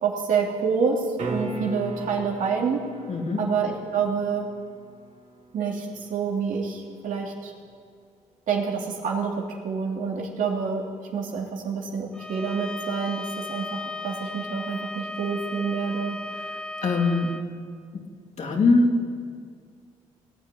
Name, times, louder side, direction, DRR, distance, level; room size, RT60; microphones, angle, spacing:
voice 1, 0.0-2.8 3.4-4.5 5.5-7.5 8.5-10.8 11.1-16.2, right 5 dB, 70° right, 0 dB, 3.0 m, -27 dB
sound 1, 1.2-7.2 11.9-12.0, right 2 dB, 55° right, 3.2 m, -39 dB
voice 2, 3.1-3.5 16.3-17.6 17.9-18.0 18.4-19.2, left 3 dB, 55° left, 1 dB, 3.0 m, -24 dB
Bowed string instrument, 12.1-17.5, left 2 dB, 5° left, 1.0 m, -36 dB
19.0 x 8.3 x 9.1 m, 2.1 s
supercardioid pair, 60°, 14 cm